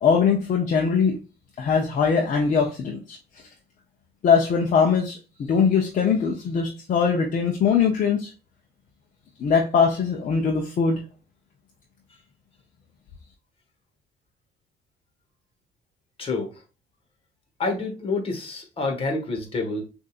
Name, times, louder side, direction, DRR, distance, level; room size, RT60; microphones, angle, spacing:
voice 1, 0.0-1.2 1.6-3.2 4.2-8.3 9.4-11.0, left 6 dB, 50° left, 1 dB, 0.8 m, -21 dB
voice 2, 16.2-16.5 17.6-19.8, left 3 dB, 35° left, 3 dB, 1.6 m, -28 dB
6.5 x 2.8 x 2.5 m, 0.33 s
cardioid pair, 110°, 17 cm